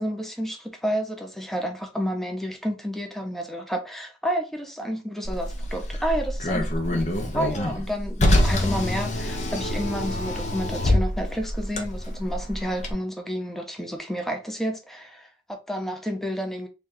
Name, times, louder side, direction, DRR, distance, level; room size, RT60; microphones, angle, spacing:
voice 1, 0.0-7.1 7.3-16.7, equal, ahead, 0.7 m, -30 dB
Car, 5.2-12.9, left 1 dB, 40° left, 0.8 m, -26 dB
3.4 x 2.8 x 3.4 m
head